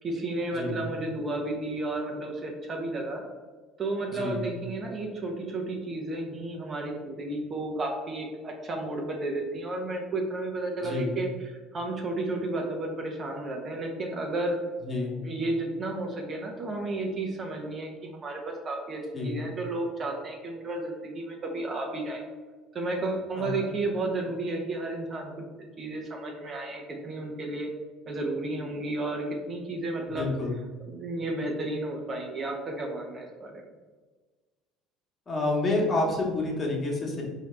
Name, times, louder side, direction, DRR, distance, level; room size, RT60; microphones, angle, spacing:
voice 1, 0.0-3.2 3.8-14.6 15.1-22.2 22.7-27.7 28.1-30.3 30.8-33.6, right 2 dB, 40° right, 1 dB, 0.8 m, -32 dB
voice 2, 0.5-0.8 4.1-4.5 10.8-11.2 14.8-15.2 19.1-19.4 23.3-23.7 30.1-30.5 35.3-37.2, left 2 dB, 30° left, -1 dB, 1.2 m, -29 dB
4.6 x 2.8 x 3.3 m, 1.4 s
supercardioid pair, 80°, 0 cm